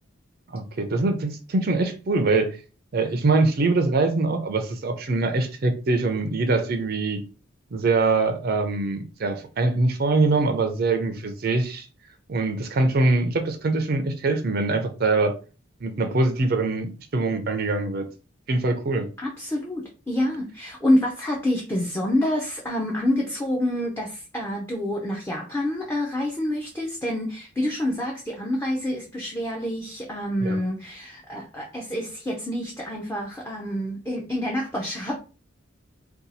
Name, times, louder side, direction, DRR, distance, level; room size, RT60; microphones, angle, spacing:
voice 1, 0.5-2.6 2.9-7.2 7.7-11.9 12.3-15.4 15.8-18.1 18.5-19.1 30.4-30.6, right 3 dB, 45° right, 0.4 m, -23 dB
voice 2, 19.2-35.1, left 1 dB, 10° left, 0.5 m, -27 dB
2.7 x 2.3 x 3.9 m
head